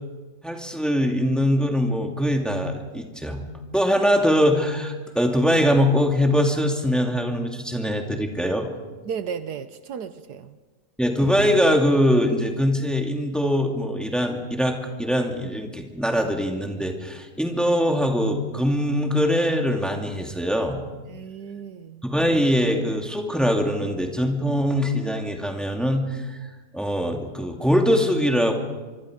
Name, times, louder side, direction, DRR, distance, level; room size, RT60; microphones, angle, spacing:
voice 1, 0.4-3.4 3.7-8.7 11.0-20.8 22.0-26.3 26.7-28.5, equal, ahead, 2 dB, 2.4 m, -22 dB
voice 2, 9.0-10.6 21.1-22.1, right 7 dB, 70° right, 11 dB, 1.4 m, -34 dB
25.0 x 24.5 x 5.1 m, 1.3 s
omnidirectional pair, 1.8 m